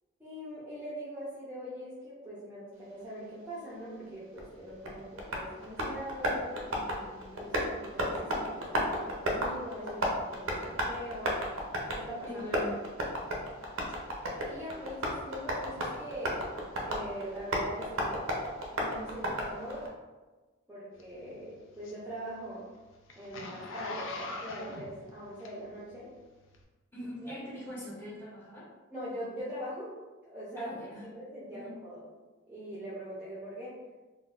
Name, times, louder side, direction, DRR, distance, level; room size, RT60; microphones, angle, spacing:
voice 1, 0.2-11.4 11.9-12.4 14.4-16.4 16.8-18.3 18.7-19.9 20.7-22.7 23.2-26.1 27.2-27.3 28.9-29.9 30.3-30.8 31.1-32.0 32.5-33.8, equal, 10° right, -9 dB, 0.6 m, -42 dB
Tap, 4.4-19.9, equal, 75° right, 0.6 m, -34 dB
voice 2, 12.2-12.8 26.9-28.7 30.6-31.1 31.5-31.7, left 1 dB, 10° left, -8 dB, 0.9 m, -42 dB
Zipper (clothing), 21.0-25.9 26.5-26.6, left 2 dB, 65° left, 0.4 m, -41 dB
3.8 x 2.1 x 2.4 m, 1.2 s
head